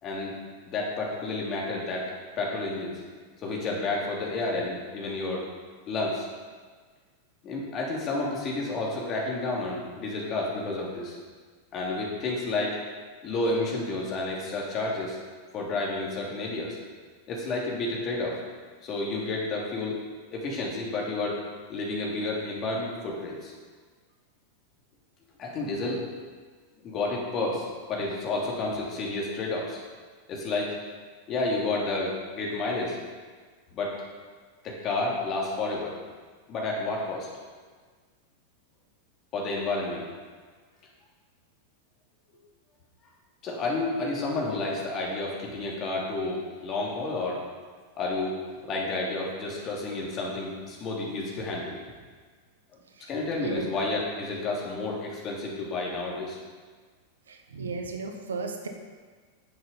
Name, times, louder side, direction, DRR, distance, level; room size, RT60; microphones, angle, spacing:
voice 1, 0.0-0.3 0.7-2.1 2.4-3.0 3.4-5.5 5.9-6.3 7.4-11.2 11.7-12.9 13.2-15.2 15.5-16.8 17.3-18.4 18.8-20.0 20.3-21.4 21.7-23.5 25.4-26.0 26.8-29.8 30.3-30.8 31.3-32.9 33.7-33.9 34.6-35.9 36.5-37.3 39.3-40.1 43.4-47.4 48.0-51.8 53.1-56.4, left 2 dB, 30° left, -3 dB, 3.1 m, -30 dB
voice 2, 57.3-58.7, right 4 dB, 70° right, 4 dB, 1.2 m, -35 dB
10.5 x 7.9 x 5.4 m, 1.5 s
figure-of-eight pair, 90°, 0 cm